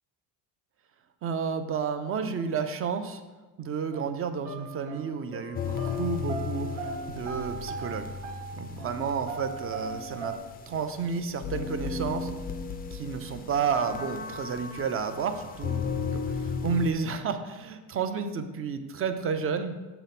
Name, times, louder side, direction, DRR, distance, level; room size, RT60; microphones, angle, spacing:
voice 1, 1.2-3.2 3.6-8.1 8.5-10.4 10.7-12.3 12.9-19.7, right 6 dB, 35° right, 9 dB, 0.5 m, -31 dB
sound 1, 3.9-4.1 4.4-9.0 9.3-10.4, right 4 dB, 80° right, 1.3 m, -39 dB
sound 2, 5.5-16.9, left 5 dB, 25° left, 0.4 m, -35 dB
6.9 x 3.3 x 5.8 m, 1.2 s
cardioid pair, 120°, 40 cm